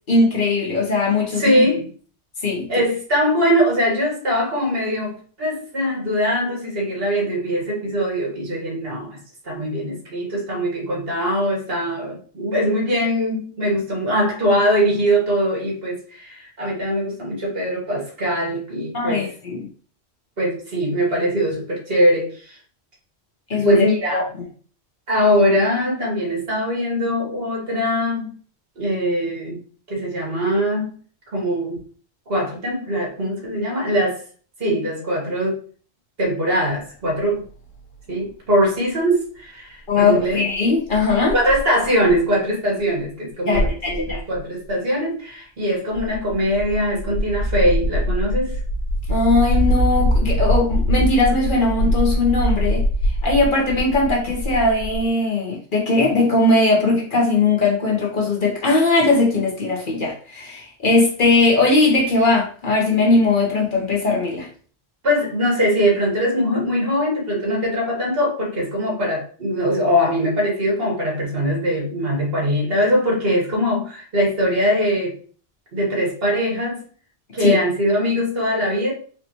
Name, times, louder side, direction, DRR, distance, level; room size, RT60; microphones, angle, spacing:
voice 1, 0.1-1.7 2.4-2.7 18.9-19.7 23.5-23.9 24.1-24.2 39.9-41.3 43.5-44.2 49.1-64.5 77.4-77.6, left 3 dB, 50° left, -1 dB, 1.2 m, -19 dB
voice 2, 1.4-1.9 2.7-9.2 9.4-19.3 20.4-22.6 23.5-24.3 25.1-28.3 28.8-29.6 29.9-31.0 31.3-31.8 32.3-34.2 34.6-35.5 36.2-37.4 38.1-40.4 41.3-48.6 65.0-75.1 75.7-76.8 77.3-78.9, equal, 65° right, -2 dB, 1.8 m, -21 dB
sound 1, 37.2-37.3 37.5-37.6 38.0-38.1 39.9-40.0 40.3-40.4 40.5-40.6 40.9-42.2 43.0-43.1 43.5-44.4 45.9-55.1, equal, 90° left, 1.2 m, -22 dB
4.3 x 3.0 x 2.9 m, 0.43 s
omnidirectional pair, 1.1 m